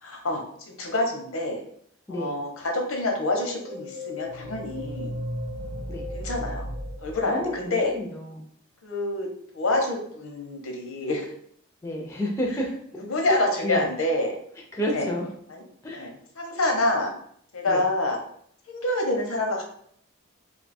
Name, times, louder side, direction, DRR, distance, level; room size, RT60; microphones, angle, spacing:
voice 1, 0.0-1.6 2.1-5.2 6.1-6.7 7.0-7.9 8.8-9.3 9.5-11.3 13.0-14.4 14.9-15.1 15.5-15.6 15.9-17.1 17.5-18.2 18.7-19.6, left 2 dB, 85° left, 2 dB, 0.7 m, -27 dB
sound 1, 3.4-8.0, left 1 dB, 90° right, 0.6 m, -35 dB
voice 2, 7.3-8.5 11.8-12.7 13.6-13.8 14.7-15.3 15.8-16.1 17.7-17.8, equal, 15° left, -1 dB, 0.4 m, -30 dB
2.6 x 2.3 x 4.1 m, 0.66 s
head